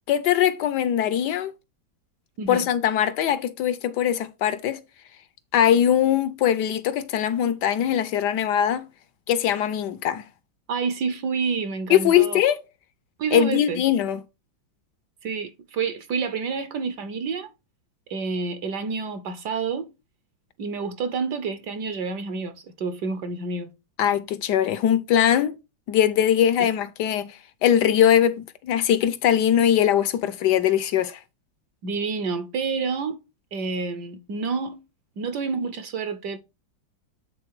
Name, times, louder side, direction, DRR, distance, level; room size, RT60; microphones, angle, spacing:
voice 1, 0.1-1.5 2.5-4.8 5.5-8.9 9.3-10.2 11.9-12.6 13.3-14.2 24.0-25.6 25.9-31.2, left 10 dB, 70° left, 1.0 m, -21 dB
voice 2, 2.4-2.7 10.7-12.4 13.2-13.8 15.2-17.5 18.1-19.9 20.6-23.7 31.8-33.2 33.5-34.8 35.2-36.4, right 5 dB, 65° right, 1.2 m, -28 dB
8.7 x 3.8 x 4.7 m
omnidirectional pair, 2.2 m